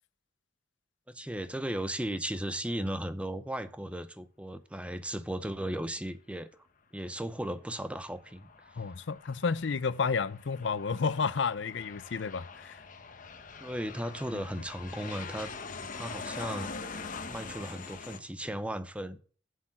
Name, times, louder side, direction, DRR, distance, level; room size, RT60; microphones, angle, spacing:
voice 1, 1.1-6.5 6.9-8.5 13.6-15.5 15.9-16.7 17.3-19.2, right 1 dB, 5° right, 0.7 m, -36 dB
Aircraft, 8.0-18.2, left 4 dB, 45° left, 1.0 m, -44 dB
voice 2, 8.8-12.8 14.3-14.4, left 5 dB, 70° left, 0.5 m, -31 dB
7.9 x 6.5 x 7.4 m
head